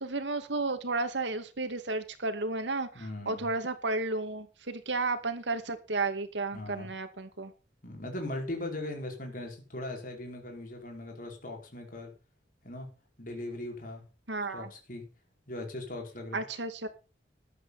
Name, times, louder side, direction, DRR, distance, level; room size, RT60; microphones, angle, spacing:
voice 1, 0.0-7.5 14.3-14.7 16.3-16.9, right 3 dB, 85° right, 8 dB, 2.2 m, -33 dB
voice 2, 2.9-3.5 6.5-6.9 7.8-12.1 12.6-12.9 13.2-14.1 14.5-15.0 15.5-16.4, left 1 dB, 50° left, 2 dB, 5.1 m, -39 dB
14.0 x 11.0 x 4.1 m, 0.32 s
head